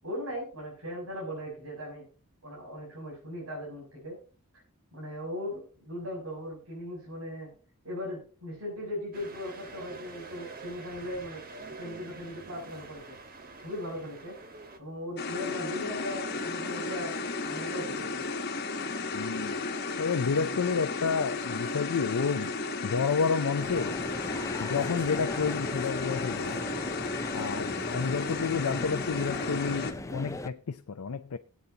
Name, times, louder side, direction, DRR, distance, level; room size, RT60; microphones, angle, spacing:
voice 1, 0.0-2.1 2.4-4.2 4.9-7.5 7.8-11.4 11.8-13.2 13.6-14.4 14.8-17.1 17.4-18.3, left 1 dB, 70° right, 6.4 m, -38 dB
sound 1, 9.1-14.8, right 3 dB, 40° right, 1.3 m, -46 dB
sound 2, 15.2-29.9, left 3 dB, 45° left, 1.2 m, -34 dB
voice 2, 19.1-19.5 20.0-22.5 22.8-24.0 24.6-26.6 27.3-31.4, left 5 dB, 90° left, 0.5 m, -30 dB
sound 3, 23.6-30.5, left 2 dB, 15° left, 0.5 m, -38 dB
19.5 x 8.3 x 2.8 m
head